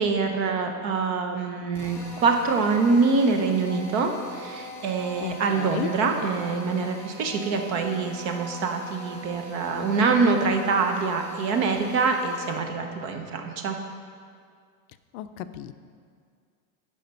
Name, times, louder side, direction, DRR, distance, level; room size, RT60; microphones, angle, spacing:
voice 1, 0.0-13.8, right 4 dB, 35° right, 4 dB, 0.7 m, -25 dB
Drill, 1.7-12.8, right 1 dB, 5° left, 0.8 m, -42 dB
voice 2, 5.2-5.9 15.1-15.7, left 12 dB, 65° left, 11 dB, 0.5 m, -34 dB
11.0 x 5.0 x 5.3 m, 2.1 s
supercardioid pair, 165°, 45 cm